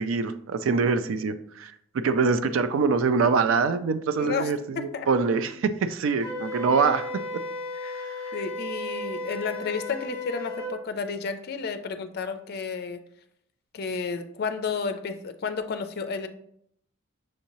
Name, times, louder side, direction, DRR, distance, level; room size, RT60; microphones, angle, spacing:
voice 1, 0.0-7.1 8.0-8.1, right 4 dB, 70° right, 11 dB, 0.4 m, -24 dB
voice 2, 4.2-5.1 7.8-7.9 8.3-13.0 13.7-16.3, left 5 dB, 50° left, 8 dB, 0.4 m, -32 dB
Wind instrument woodwind instrument, 6.2-10.8, left 2 dB, 10° left, 1.4 m, -34 dB
6.3 x 2.7 x 3.0 m, 0.69 s
head